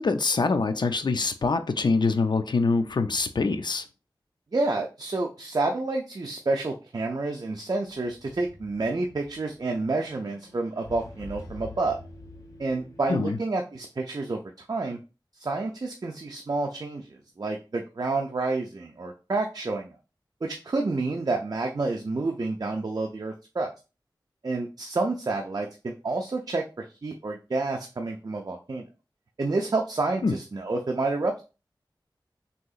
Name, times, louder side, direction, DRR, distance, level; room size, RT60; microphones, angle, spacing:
voice 1, 0.0-3.8 13.1-13.4 30.2-30.3, left 4 dB, 65° left, 8 dB, 0.4 m, -24 dB
voice 2, 4.5-12.0 12.6-14.4 14.7-15.0 15.4-19.9 20.4-23.7 24.4-28.9 29.4-31.4, right 3 dB, 50° right, 2 dB, 0.4 m, -29 dB
sound 1, 7.9-13.3, left 1 dB, 40° left, 1.7 m, -47 dB
3.6 x 2.8 x 2.4 m, 0.31 s
wide cardioid pair, 50°, 8 cm